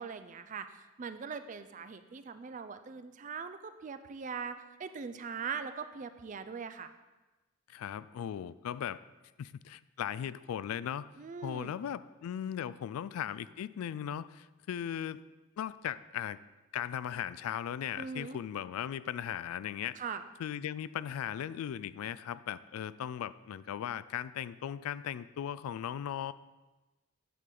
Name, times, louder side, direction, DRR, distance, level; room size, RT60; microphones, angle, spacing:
voice 1, 0.0-6.9 11.2-11.8 18.0-18.4 20.0-20.2, right 6 dB, 35° right, 10 dB, 0.4 m, -41 dB
voice 2, 7.7-9.0 9.4-11.1 11.4-15.2 15.6-16.4 16.7-20.0 20.4-26.3, left 9 dB, 90° left, 17 dB, 0.3 m, -38 dB
9.2 x 5.9 x 3.8 m, 1.1 s
head